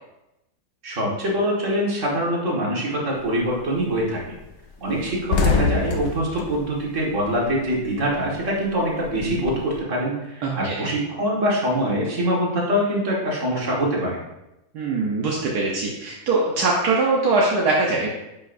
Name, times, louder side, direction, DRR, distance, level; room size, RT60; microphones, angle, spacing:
voice 1, 0.8-4.3 4.8-14.2, equal, 50° right, -3 dB, 2.0 m, -24 dB
sound 1, 3.2-3.5 3.9-4.1 4.3-4.5 4.8-7.8 8.1-9.7, left 4 dB, 85° left, 1.4 m, -25 dB
voice 2, 10.4-10.9 14.7-18.1, right 3 dB, 75° right, -3 dB, 1.4 m, -22 dB
10.5 x 5.5 x 2.6 m, 0.92 s
omnidirectional pair, 1.7 m